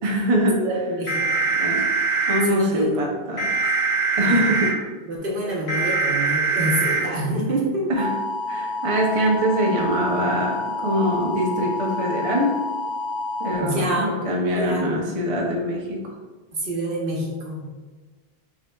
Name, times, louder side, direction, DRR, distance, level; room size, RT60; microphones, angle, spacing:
voice 1, 0.0-0.6 1.6-1.9 2.3-3.6 4.2-4.8 7.9-8.1 8.5-12.5 13.4-16.1, equal, 40° right, -1 dB, 0.7 m, -23 dB
voice 2, 0.6-1.5 2.4-3.0 4.2-4.6 5.0-7.9 13.6-14.1 14.5-15.1 16.5-17.7, right 1 dB, 60° right, -2 dB, 1.1 m, -27 dB
sound 1, 1.1-2.4 3.4-4.7 5.7-7.0 8.0-13.6, right 3 dB, 85° left, 1.5 m, -25 dB
6.1 x 3.7 x 2.2 m, 1.3 s
omnidirectional pair, 1.0 m